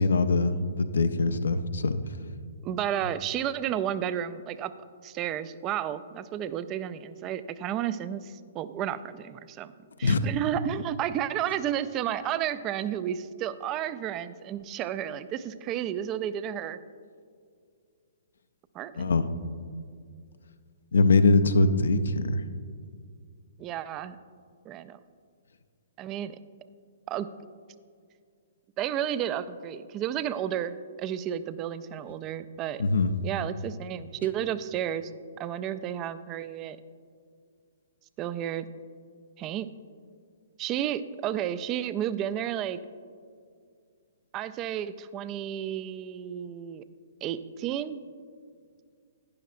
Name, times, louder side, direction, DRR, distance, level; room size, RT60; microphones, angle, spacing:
voice 1, 0.0-2.0 10.0-10.2 19.0-19.3 20.9-22.4 32.8-33.1, left 3 dB, 70° left, 10 dB, 0.5 m, -22 dB
voice 2, 2.6-4.7 5.0-9.7 10.0-16.8 18.7-19.1 23.6-24.2 24.7-25.0 26.0-26.4 27.1-27.3 28.8-32.8 33.2-35.1 35.4-36.8 38.2-38.7 39.4-39.7 40.6-42.8 44.3-46.8 47.2-48.0, right 10 dB, 30° right, 14 dB, 0.4 m, -32 dB
11.5 x 10.0 x 2.5 m, 2.2 s
figure-of-eight pair, 120°, 0 cm